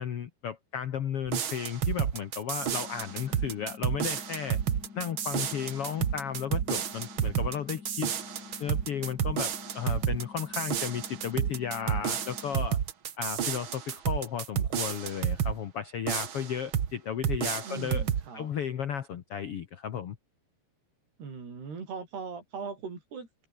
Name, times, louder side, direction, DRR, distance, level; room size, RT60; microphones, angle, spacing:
voice 1, 0.0-4.6 4.9-8.1 8.6-12.8 13.2-18.0 18.3-20.2, left 8 dB, 85° left, 1.2 m, -34 dB
sound 1, 1.3-15.6 16.1-16.9 17.2-18.3, right 8 dB, 60° right, 1.3 m, -31 dB
sound 2, 2.6-12.6, left 6 dB, 50° left, 1.1 m, -48 dB
voice 2, 17.6-18.5 21.2-23.5, right 5 dB, 80° right, 8.2 m, -40 dB
omnidirectional pair, 4.6 m